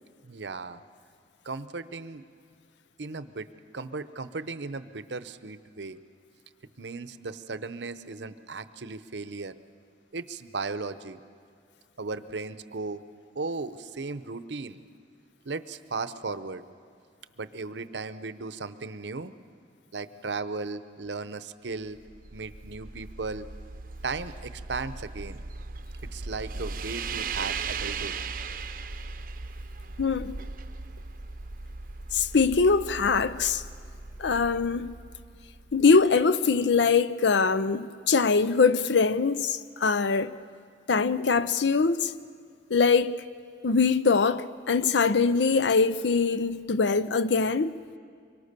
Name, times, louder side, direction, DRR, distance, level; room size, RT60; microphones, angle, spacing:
voice 1, 0.2-0.8 1.4-2.2 3.0-3.5 3.7-6.0 6.8-9.5 10.1-11.2 12.0-13.0 13.3-14.8 15.4-16.6 17.4-19.3 19.9-22.0 22.3-23.5 24.0-25.4 26.1-28.1, right 3 dB, 80° right, 0.8 m, -36 dB
sound 1, 21.9-36.0, right 4 dB, 50° right, 0.7 m, -38 dB
voice 2, 30.0-30.4 32.1-33.6 34.2-34.9 35.7-40.4 40.9-42.1 42.7-43.1 43.6-47.7, left 4 dB, 80° left, 0.6 m, -23 dB
25.0 x 23.0 x 6.8 m
head